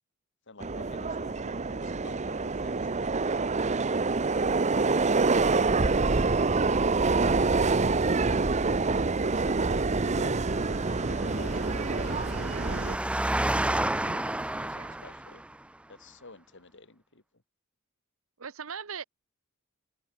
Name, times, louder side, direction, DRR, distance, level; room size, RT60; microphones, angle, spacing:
voice 1, 0.5-3.6 4.3-6.1 6.6-7.2 9.2-10.4 11.1-15.4 15.9-17.2, left 3 dB, 60° left, 2.8 m, -51 dB
Subway metro underground, 0.6-13.0, right 3 dB, 35° right, 0.8 m, -26 dB
Engine, 10.0-15.6, right 1 dB, 5° right, 0.4 m, -32 dB
sound 1, 12.1-14.7, right 2 dB, 50° right, 1.7 m, -49 dB
voice 2, 18.4-19.0, right 7 dB, 70° right, 0.9 m, -39 dB
head